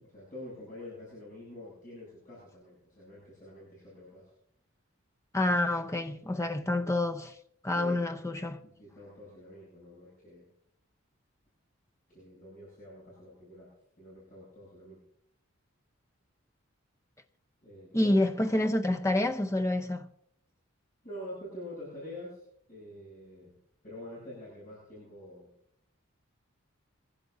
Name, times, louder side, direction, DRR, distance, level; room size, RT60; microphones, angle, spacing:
voice 1, 0.0-4.3 7.7-8.0 8.6-10.5 12.1-13.7 14.0-15.0 17.6-18.2 21.0-23.5 23.8-25.5, left 1 dB, 40° left, 7.9 m, -46 dB
voice 2, 5.3-7.3 7.6-8.6 17.9-20.1, left 1 dB, 15° left, 0.7 m, -28 dB
23.5 x 16.0 x 2.7 m
head